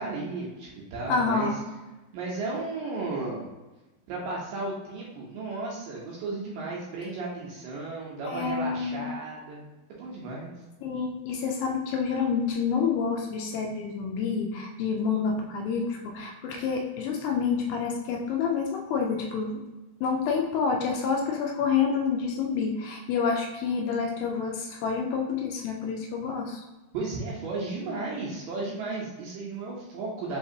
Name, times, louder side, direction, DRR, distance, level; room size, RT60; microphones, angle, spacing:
voice 1, 0.0-1.5 2.1-3.5 4.1-10.5 26.9-30.4, right 3 dB, 75° right, -4 dB, 2.1 m, -34 dB
voice 2, 1.1-1.6 8.3-9.1 10.8-19.6 20.0-26.6, left 5 dB, 80° left, 1 dB, 2.3 m, -28 dB
5.7 x 2.9 x 2.7 m, 1.1 s
omnidirectional pair, 4.5 m